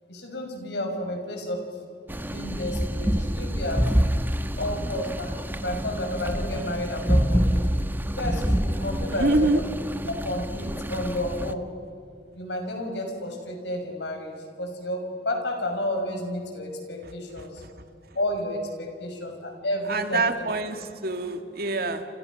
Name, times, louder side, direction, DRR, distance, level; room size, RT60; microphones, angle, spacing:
voice 1, 0.1-1.6 2.2-3.8 4.6-7.6 8.2-9.5 10.1-11.6 12.3-17.6 18.1-20.2, left 1 dB, 75° left, 3 dB, 6.2 m, -31 dB
sound 1, 2.1-11.5, equal, 10° right, 1.1 m, -27 dB
voice 2, 9.1-9.6 17.0-17.1 17.4-17.5 19.9-22.1, right 2 dB, 60° right, 7 dB, 2.3 m, -25 dB
29.5 x 29.0 x 6.3 m, 2.3 s
head